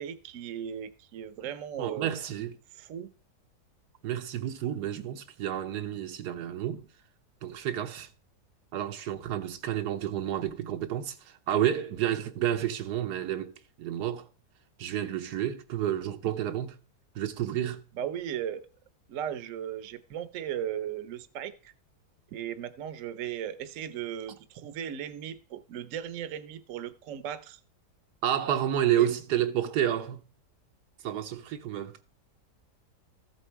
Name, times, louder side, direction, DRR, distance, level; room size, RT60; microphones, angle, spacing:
voice 1, 0.0-2.1 2.7-3.1 17.9-18.7 19.1-21.7 22.3-27.6 29.0-29.1, right 9 dB, 55° right, 1.1 m, -37 dB
voice 2, 1.8-2.5 4.0-6.8 7.4-8.1 8.7-14.3 14.8-16.8 17.2-17.8 28.2-30.2 31.0-32.0, right 11 dB, 75° right, 1.3 m, -30 dB
14.0 x 7.6 x 4.6 m
omnidirectional pair, 1.8 m